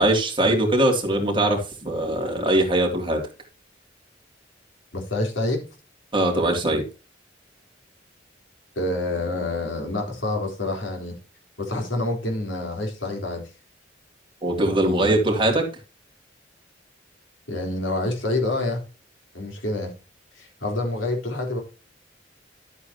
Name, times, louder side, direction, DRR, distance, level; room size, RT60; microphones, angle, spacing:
voice 1, 0.0-3.2 6.1-6.9 14.4-15.6, right 1 dB, 25° right, 1 dB, 2.8 m, -21 dB
voice 2, 4.9-5.7 8.8-11.2 11.6-13.4 17.5-18.8 19.3-19.9 20.4-21.6, left 2 dB, 85° left, 1 dB, 3.9 m, -27 dB
12.5 x 8.3 x 2.9 m, 0.32 s
head